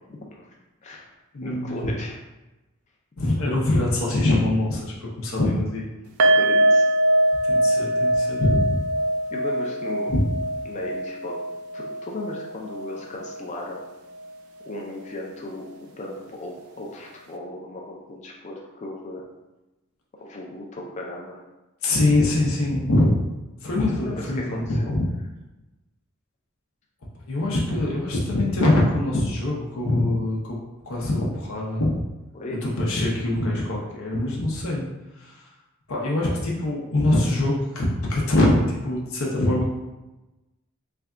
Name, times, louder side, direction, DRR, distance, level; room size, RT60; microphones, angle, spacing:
voice 1, 0.1-0.5 0.8-1.1 1.4-2.2 3.3-3.4 6.4-6.9 9.3-10.1 10.6-11.4 11.7-13.8 14.7-19.2 20.2-21.4 23.6-23.7 24.0-25.0 32.3-32.6, left 1 dB, 30° left, -1 dB, 0.4 m, -36 dB
voice 2, 1.3-1.8 3.2-5.9 7.5-8.8 10.1-10.2 21.8-23.2 23.6-25.1 27.3-30.6 30.9-32.0 32.6-34.9 35.2-35.3 35.9-39.7, left 1 dB, 70° left, -3 dB, 0.6 m, -23 dB
sound 1, 6.2-13.4 13.7-13.9 14.2-14.3, right 1 dB, 80° right, 0.4 m, -23 dB
3.3 x 2.3 x 3.6 m, 1.0 s
head